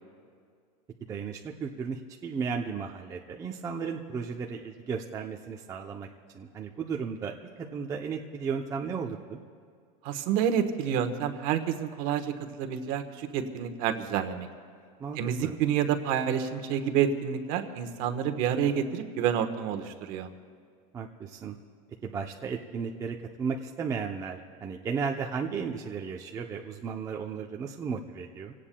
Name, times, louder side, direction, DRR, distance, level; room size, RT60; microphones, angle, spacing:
voice 1, 1.1-6.1 6.3-9.4 15.0-15.6 20.9-21.6 22.0-28.5, right 6 dB, 15° right, 0 dB, 0.6 m, -35 dB
voice 2, 10.0-14.5 15.2-20.3, right 8 dB, 45° right, 7 dB, 1.2 m, -28 dB
26.5 x 17.5 x 2.3 m, 2.2 s
supercardioid pair, 160°, 20 cm